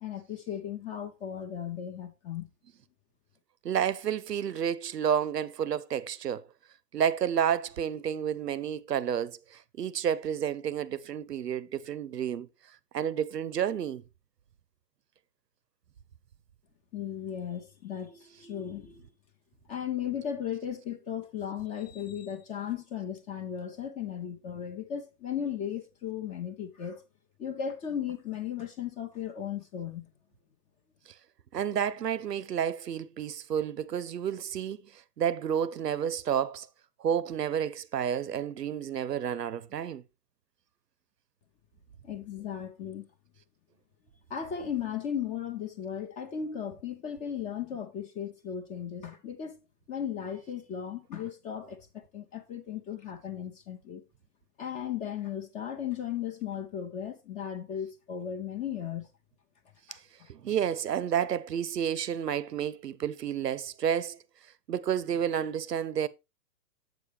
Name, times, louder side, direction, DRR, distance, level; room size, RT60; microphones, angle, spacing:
voice 1, 0.0-2.5 16.9-19.1 19.7-27.0 27.4-30.1 42.0-43.1 44.3-49.6 49.9-54.0 54.6-59.1 59.9-60.3, left 9 dB, 15° left, 0.7 m, -36 dB
voice 2, 3.6-6.4 6.9-12.5 12.9-14.0 31.5-34.8 35.2-36.7 37.0-40.0 59.9-60.0 60.3-64.2 64.7-66.1, right 9 dB, 75° right, 0.7 m, -30 dB
8.0 x 6.9 x 3.3 m
figure-of-eight pair, 120°, 49 cm